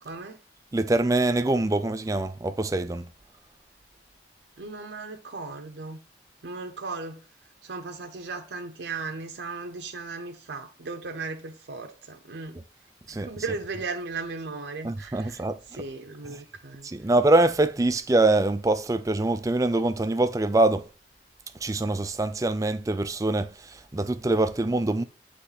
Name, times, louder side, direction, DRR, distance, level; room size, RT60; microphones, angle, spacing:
voice 1, 0.0-0.4 4.6-6.0 6.4-7.2 7.6-12.6 13.1-15.4 15.8-16.9, right 3 dB, 75° right, 0.6 m, -36 dB
voice 2, 0.7-3.1 13.1-13.6 14.8-15.8 16.2-16.4 16.8-20.9 21.6-25.0, right 2 dB, 20° right, 0.4 m, -24 dB
8.1 x 3.2 x 4.0 m
head